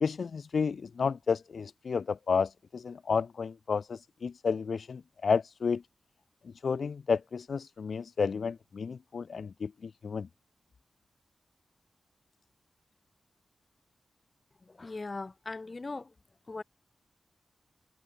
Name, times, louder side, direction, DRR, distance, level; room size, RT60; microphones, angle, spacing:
voice 1, 0.0-5.8 6.6-10.3, left 5 dB, 60° left, 1.4 m, -31 dB
voice 2, 14.7-16.1 16.5-16.6, left 3 dB, 30° left, 6.4 m, -39 dB
wide cardioid pair, 160°, 0 cm